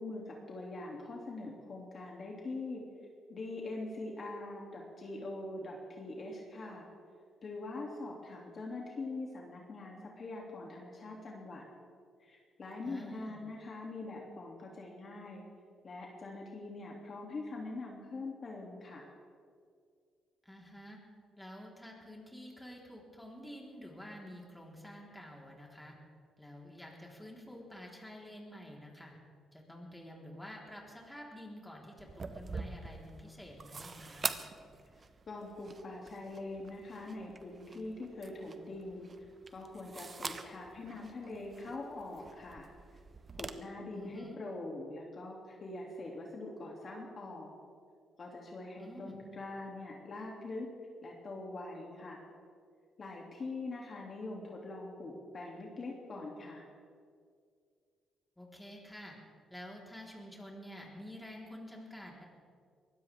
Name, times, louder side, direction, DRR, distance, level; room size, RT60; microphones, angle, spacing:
voice 1, 0.0-2.9 3.3-6.9 7.4-11.6 12.2-15.4 15.8-19.1 35.3-39.1 39.5-42.7 43.4-47.5 48.2-50.7 51.0-52.2 53.0-56.6, left 2 dB, 45° left, -1 dB, 2.7 m, -43 dB
voice 2, 12.8-13.4 20.4-21.0 21.4-25.9 26.4-29.2 29.5-34.3 43.9-44.4 48.8-49.2 58.4-59.2 59.5-62.2, equal, 5° left, -2 dB, 4.0 m, -49 dB
sound 1, 32.0-43.5, right 4 dB, 35° right, 1.0 m, -45 dB
23.0 x 16.5 x 3.6 m, 2.2 s
cardioid pair, 90°, 0 cm